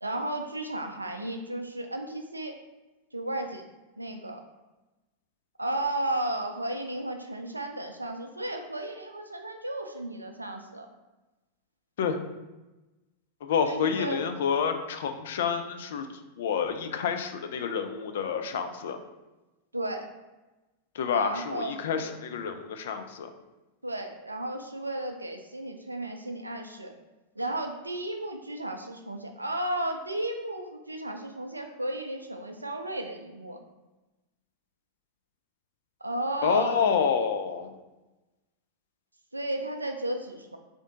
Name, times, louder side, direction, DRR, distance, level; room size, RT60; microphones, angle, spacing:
voice 1, 0.0-2.5 3.1-3.6 4.0-4.4 5.6-10.9 13.6-14.2 19.7-20.1 21.1-22.1 23.8-26.9 27.4-33.6 36.0-36.8 39.3-40.6, right 1 dB, 85° right, 4 dB, 0.4 m, -34 dB
voice 2, 13.4-16.1 16.4-19.0 20.9-23.3 36.4-37.7, left 6 dB, 60° left, 7 dB, 0.3 m, -28 dB
3.6 x 2.5 x 3.6 m, 1.1 s
figure-of-eight pair, 90°, 0 cm